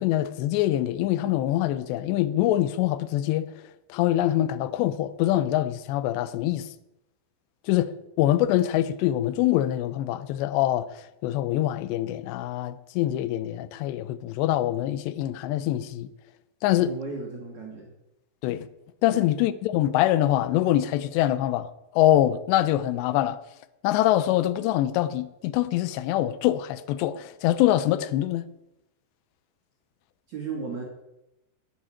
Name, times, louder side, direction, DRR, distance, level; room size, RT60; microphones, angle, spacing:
voice 1, 0.0-3.5 3.9-6.7 7.6-16.1 16.6-16.9 18.4-18.7 19.0-23.4 23.8-28.5, left 13 dB, 80° left, 2.8 m, -24 dB
voice 2, 16.8-17.9 19.1-19.2 30.3-30.8, right 4 dB, 50° right, 2.8 m, -35 dB
11.0 x 9.1 x 8.6 m
omnidirectional pair, 5.3 m